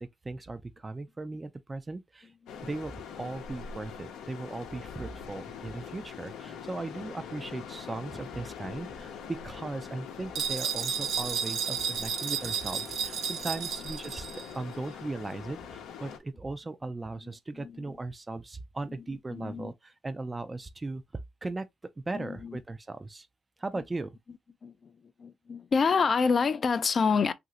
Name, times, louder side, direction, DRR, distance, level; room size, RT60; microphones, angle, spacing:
voice 1, 0.0-2.3 2.6-14.3 14.5-21.0 21.4-21.7 22.1-23.3 23.6-24.2, right 2 dB, 20° right, 0.4 m, -38 dB
sound 1, 2.5-16.2, left 7 dB, 85° left, 0.7 m, -43 dB
sound 2, 10.3-14.5, right 8 dB, 85° right, 0.6 m, -32 dB
voice 2, 17.6-18.0 19.3-19.7 22.1-22.6 24.6-24.9 25.2-27.3, left 5 dB, 40° left, 0.4 m, -27 dB
3.0 x 2.5 x 2.8 m
cardioid pair, 90°, 0 cm